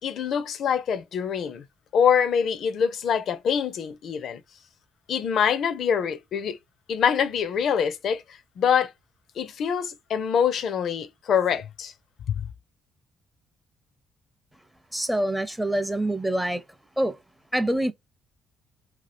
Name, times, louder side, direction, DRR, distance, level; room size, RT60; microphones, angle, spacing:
voice 1, 0.0-1.6 1.9-4.4 5.1-6.6 6.9-8.9 9.4-11.9 12.3-12.5, left 7 dB, 60° left, 0.5 m, -25 dB
voice 2, 14.9-16.6 17.0-17.2 17.5-17.9, right 1 dB, 5° right, 0.5 m, -25 dB
2.8 x 2.4 x 3.2 m
hypercardioid pair, 50°, 0 cm